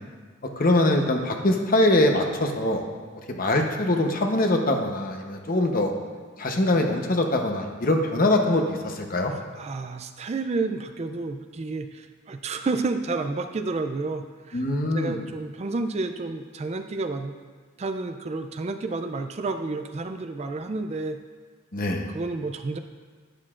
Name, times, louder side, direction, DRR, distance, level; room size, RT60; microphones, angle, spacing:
voice 1, 0.6-2.8 3.3-5.9 6.4-9.3 14.5-15.2 21.7-22.1, left 1 dB, 45° left, 3 dB, 0.9 m, -23 dB
voice 2, 9.6-14.6 14.9-17.3 17.8-21.2 22.1-22.8, right 3 dB, 35° right, 7 dB, 0.4 m, -30 dB
11.5 x 9.7 x 2.5 m, 1.5 s
head